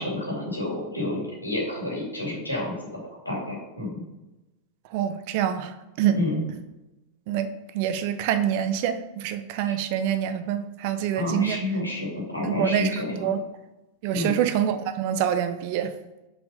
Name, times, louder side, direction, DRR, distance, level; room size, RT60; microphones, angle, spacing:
voice 1, 0.0-2.7 3.2-4.0 6.1-6.4 9.6-9.7 11.1-13.3 14.1-14.3, left 1 dB, 85° left, -3 dB, 2.7 m, -29 dB
voice 2, 4.9-5.7 6.0-6.2 7.3-7.5 7.7-11.6 12.4-13.4 14.0-15.9, right 9 dB, 45° right, 10 dB, 0.7 m, -26 dB
6.1 x 5.2 x 5.1 m, 1.0 s
figure-of-eight pair, 90°, 0 cm